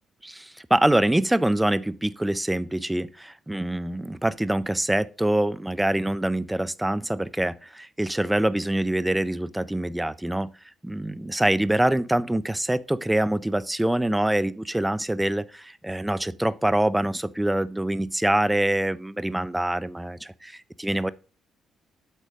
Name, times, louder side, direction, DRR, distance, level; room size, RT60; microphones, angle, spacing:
voice 1, 0.2-10.5 10.8-21.1, right 1 dB, 10° right, 0.4 m, -25 dB
8.4 x 3.4 x 6.1 m
cardioid pair, 90°, 0 cm